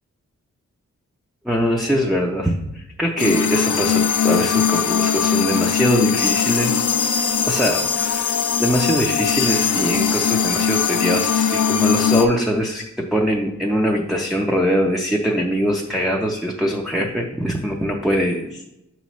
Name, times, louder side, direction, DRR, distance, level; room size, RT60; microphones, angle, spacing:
voice 1, 1.4-6.9 7.5-18.6, equal, ahead, 0 dB, 0.5 m, -22 dB
sound 1, 3.2-12.2, left 7 dB, 85° left, 0.6 m, -20 dB
6.8 x 3.1 x 5.6 m, 0.87 s
wide cardioid pair, 110°, 30 cm